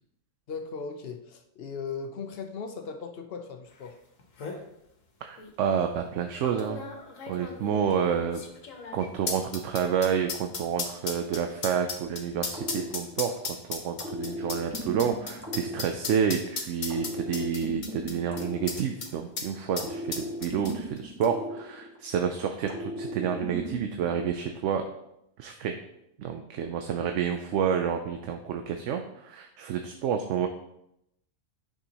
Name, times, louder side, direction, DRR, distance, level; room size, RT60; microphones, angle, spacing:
voice 1, 0.5-4.0 7.7-7.8, left 5 dB, 55° left, 6 dB, 0.9 m, -38 dB
sound 1, 3.9-4.0 4.2-4.6 5.4-5.5 6.4-19.1 19.4-19.5 19.8-21.0 21.2-21.3, left 4 dB, 85° left, 1.5 m, -36 dB
voice 2, 5.2-6.8 7.3-8.4 8.9-24.8 25.4-25.7 26.2-30.5, right 7 dB, 75° right, 6 dB, 0.9 m, -29 dB
sound 2, 12.5-13.5 14.0-16.4 16.9-19.3 19.8-22.2 22.7-24.2, equal, 10° right, 1.2 m, -37 dB
9.5 x 6.2 x 2.9 m, 0.82 s
omnidirectional pair, 1.3 m